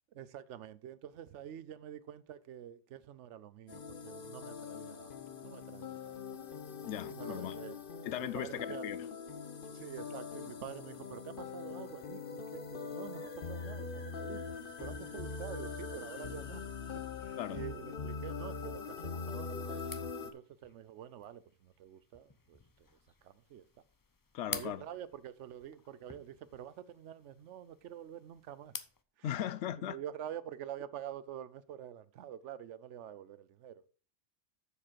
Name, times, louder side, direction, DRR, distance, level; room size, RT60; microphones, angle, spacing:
voice 1, 0.1-5.1 5.4-6.2 7.0-7.8 8.2-8.8 9.7-14.4 14.8-16.6 17.2-19.9 20.2-22.9 23.2-23.6 24.5-28.7 29.2-29.3 29.8-33.8, right 10 dB, 80° right, 0.9 m, -47 dB
sound 1, 3.7-20.3, left 5 dB, 50° left, 1.0 m, -42 dB
voice 2, 6.8-7.6 8.0-9.1 17.4-17.6 24.3-24.8 29.2-30.0, left 11 dB, 75° left, 0.9 m, -38 dB
sound 2, 19.7-29.0, left 4 dB, 30° left, 0.3 m, -50 dB
7.4 x 6.8 x 4.5 m
omnidirectional pair, 1.2 m